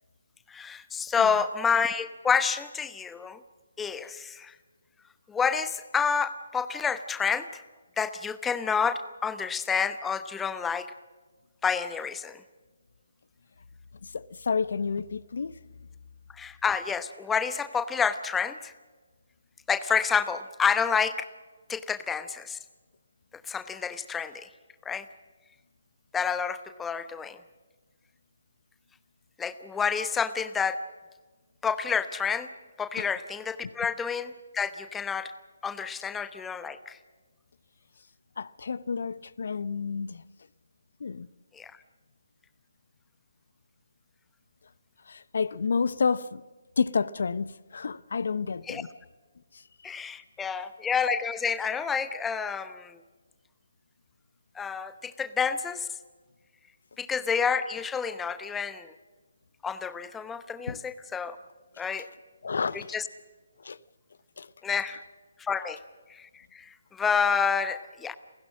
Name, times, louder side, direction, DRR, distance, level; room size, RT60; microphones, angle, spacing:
voice 1, 0.5-3.4 3.8-4.5 5.3-7.5 8.0-10.9 11.6-12.4 16.4-18.7 19.7-21.1 21.7-22.6 23.5-24.5 24.8-25.0 26.1-27.4 29.4-30.8 31.6-32.5 32.8-35.3 35.6-37.0 41.6-41.7 48.7-48.8 49.8-53.0 54.6-55.9 57.0-58.9 59.6-61.4 61.8-62.1 62.7-63.0 64.6-65.0 65.4-65.8 66.1-68.2, left 6 dB, 10° left, 0.9 m, -29 dB
voice 2, 14.0-15.5 33.0-33.1 38.4-40.2 41.0-41.3 45.1-46.4 46.8-48.9 60.7-60.8 62.4-62.9 63.6-63.8 64.4-64.5, left 5 dB, 65° left, 0.6 m, -30 dB
28.5 x 16.0 x 7.5 m
figure-of-eight pair, 145°, 0 cm